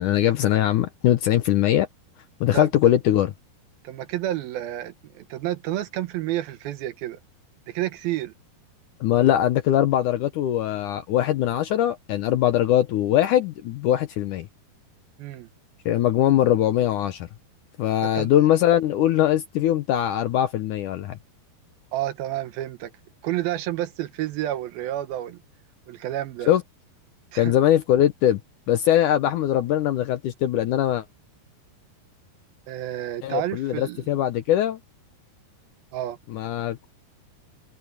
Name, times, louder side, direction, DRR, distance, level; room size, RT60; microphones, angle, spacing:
voice 1, 0.0-1.9 2.4-3.3 9.0-14.5 15.9-17.3 17.8-21.2 26.5-26.6 27.4-28.4 28.7-31.0 33.2-34.8 36.3-36.9, left 12 dB, 75° left, 2.0 m, -21 dB
voice 2, 3.8-7.2 7.7-8.3 15.2-15.5 18.0-18.3 21.9-22.9 23.2-25.4 25.9-26.5 27.3-27.5 32.7-34.1 35.9-36.2, right 13 dB, 80° right, 2.8 m, -30 dB
open air
omnidirectional pair, 4.5 m